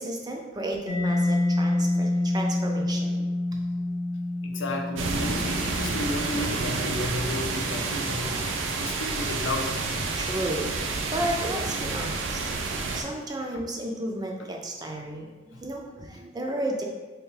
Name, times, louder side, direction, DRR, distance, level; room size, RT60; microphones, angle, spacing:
voice 1, 0.0-3.4 10.2-16.8, right 1 dB, 20° right, 1 dB, 0.4 m, -33 dB
Mallet percussion, 0.9-8.4, left 1 dB, 35° left, 0.5 m, -28 dB
voice 2, 4.4-8.3 8.8-10.1, left 2 dB, 80° left, 1 dB, 0.5 m, -32 dB
sound 1, 5.0-13.0, right 3 dB, 85° right, 0.5 m, -29 dB
3.5 x 2.9 x 3.1 m, 1.2 s
head